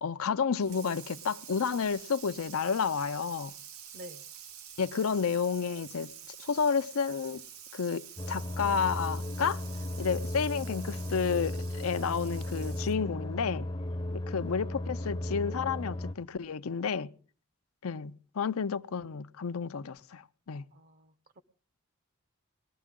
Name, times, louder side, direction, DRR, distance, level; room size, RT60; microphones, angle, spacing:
voice 1, 0.0-3.5 4.8-7.4 7.7-9.6 10.0-13.7 14.1-17.1 17.8-20.6, left 6 dB, 80° left, 0.6 m, -31 dB
Water tap faucet / Sink (filling or washing), 0.6-13.1, right 9 dB, 90° right, 1.1 m, -48 dB
sound 1, 8.2-16.1, left 1 dB, 25° left, 0.6 m, -35 dB
voice 2, 20.7-21.4, equal, 45° right, 0.9 m, -49 dB
20.0 x 13.0 x 3.7 m
head